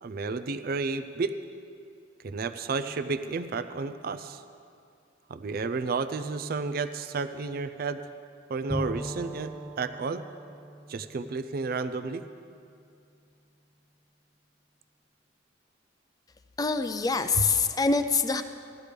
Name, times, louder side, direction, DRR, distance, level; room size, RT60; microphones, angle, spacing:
voice 1, 0.0-1.4 2.2-4.4 5.3-8.0 8.5-10.2 10.9-12.2 17.3-17.5, right 4 dB, 50° right, 11 dB, 0.4 m, -31 dB
Bowed string instrument, 8.7-12.4, right 1 dB, 5° right, 1.8 m, -39 dB
voice 2, 16.6-18.4, left 4 dB, 20° left, 9 dB, 0.4 m, -25 dB
16.0 x 12.0 x 3.4 m, 2.4 s
head